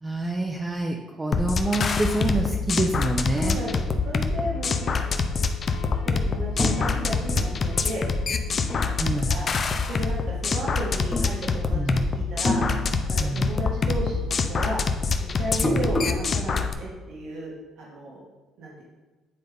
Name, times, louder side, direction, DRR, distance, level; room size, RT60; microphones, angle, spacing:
voice 1, 0.0-3.6 9.0-9.3 11.7-12.0 13.2-13.5 15.6-15.8, right 2 dB, 20° right, 1 dB, 0.7 m, -27 dB
sound 1, 1.3-16.7, left 4 dB, 45° left, 0.6 m, -25 dB
voice 2, 3.3-4.9 6.0-8.1 9.1-9.5 9.9-12.6 13.3-14.8 15.2-18.2 18.6-18.8, right 1 dB, 75° right, -5 dB, 1.9 m, -34 dB
sound 2, 4.0-9.0, left 7 dB, 80° left, 0.8 m, -43 dB
sound 3, 6.6-9.5 9.8-10.6 11.0-12.0 12.2-13.6 13.8-16.3, left 2 dB, 30° left, 1.2 m, -30 dB
9.4 x 3.7 x 3.5 m, 1.2 s
supercardioid pair, 80°, 0 cm